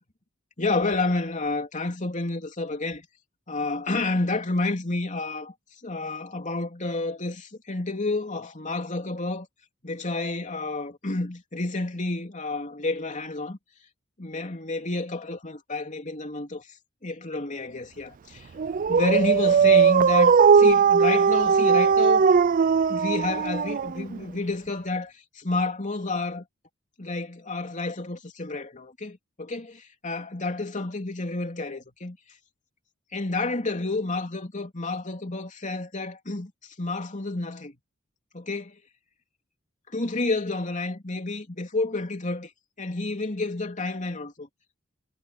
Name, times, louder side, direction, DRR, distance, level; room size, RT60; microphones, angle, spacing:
voice 1, 0.6-3.0 3.5-5.5 5.8-9.5 9.8-13.6 14.2-16.7 17.0-18.5 18.9-22.3 22.9-26.4 27.0-32.2 33.1-36.5 36.8-37.7 38.3-38.7 39.9-42.5 42.8-44.5, left 2 dB, 35° left, 3.2 m, -30 dB
Dog, 18.6-24.2, right 6 dB, 40° right, 0.4 m, -19 dB
head